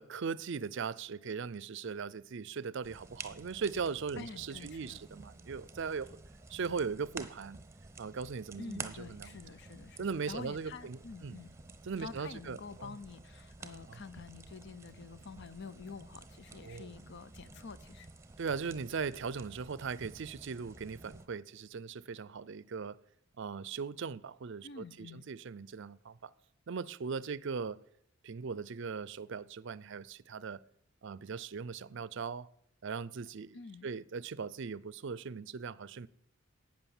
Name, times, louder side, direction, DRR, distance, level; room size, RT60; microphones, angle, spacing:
voice 1, 0.0-6.2 6.5-7.6 8.0-9.4 10.0-11.4 11.8-13.0 13.9-14.0 16.6-16.9 18.4-23.0 23.4-26.3 26.7-27.8 28.2-30.6 31.0-32.5 32.8-33.6 33.8-36.1, right 5 dB, 60° right, 0.5 m, -39 dB
sound 1, 2.8-21.3, right 3 dB, 15° right, 0.9 m, -51 dB
voice 2, 4.2-5.0 8.6-11.5 12.0-18.1 24.6-25.2 33.5-33.9, left 4 dB, 55° left, 0.7 m, -48 dB
11.5 x 8.8 x 7.1 m
head